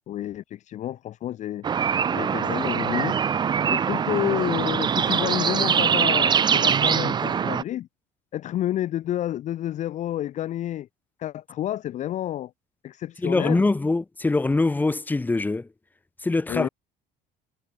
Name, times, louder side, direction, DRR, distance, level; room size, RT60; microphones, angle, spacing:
voice 1, 0.1-1.7 2.1-3.2 3.7-7.9 8.3-10.9 11.2-12.5 12.8-13.7 16.5-16.7, left 12 dB, 40° left, 0.7 m, -29 dB
sound 1, 1.6-7.6, right 7 dB, 25° right, 0.6 m, -23 dB
voice 2, 13.2-15.7 16.2-16.7, left 3 dB, 10° left, 1.2 m, -23 dB
cardioid pair, 145°, 18 cm